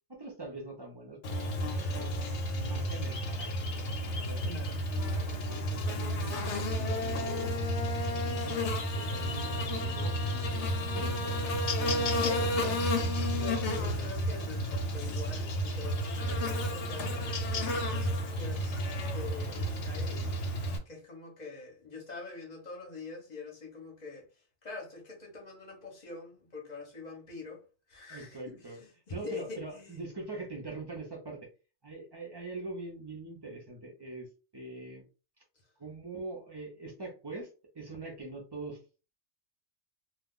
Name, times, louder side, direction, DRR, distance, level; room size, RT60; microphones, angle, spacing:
voice 1, 0.1-2.1 2.5-4.4 5.0-11.3 11.8-12.8 28.1-28.8 29.1-31.5 31.8-34.3 34.5-35.0 35.8-37.5 37.7-38.8, right 2 dB, 30° right, 0.5 m, -44 dB
Buzz, 1.2-20.8, equal, 65° left, 0.9 m, -32 dB
voice 2, 4.4-4.8 11.9-12.6 13.2-20.4 20.9-24.3 24.6-30.0, left 3 dB, 35° left, 0.8 m, -44 dB
sound 1, 7.1-19.1, equal, 5° left, 1.1 m, -45 dB
2.4 x 2.3 x 3.6 m
omnidirectional pair, 1.4 m